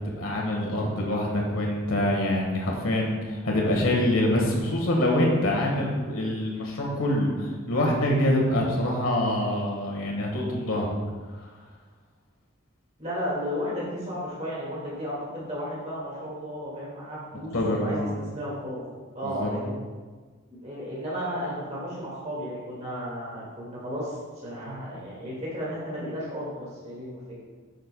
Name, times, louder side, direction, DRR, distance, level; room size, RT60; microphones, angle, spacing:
voice 1, 0.0-11.0 11.4-11.5 17.5-18.1 19.2-19.5, left 1 dB, 70° left, -1 dB, 1.6 m, -25 dB
voice 2, 13.0-18.8 19.1-19.8 20.5-27.2, equal, 30° right, -6 dB, 2.0 m, -34 dB
8.8 x 6.5 x 2.3 m, 1.4 s
head